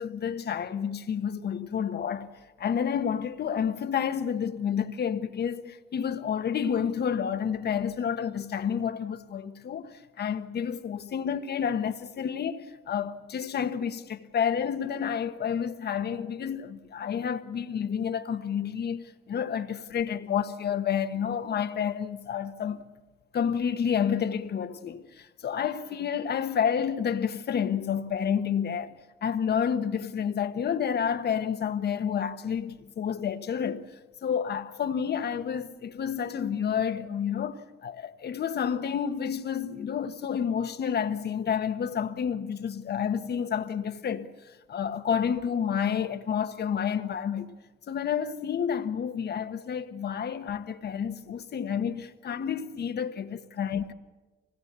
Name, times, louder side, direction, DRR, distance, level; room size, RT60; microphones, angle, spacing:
voice 1, 0.0-2.3 2.6-22.8 23.3-28.9 29.2-33.9 34.2-44.3 44.7-47.5 47.9-53.9, left 8 dB, 55° left, 1.3 m, -30 dB
25.0 x 18.5 x 8.2 m
cardioid pair, 90°, 20 cm